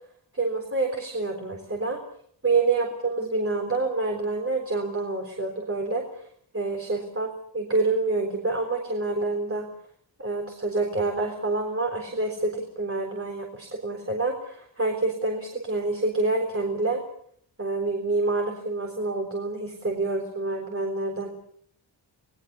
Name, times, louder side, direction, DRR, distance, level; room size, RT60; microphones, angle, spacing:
voice 1, 0.3-2.0 2.4-6.3 6.5-9.7 10.2-17.0 17.6-21.3, right 3 dB, 30° right, 2 dB, 3.9 m, -27 dB
28.0 x 19.0 x 6.9 m, 0.65 s
wide cardioid pair, 145°, 44 cm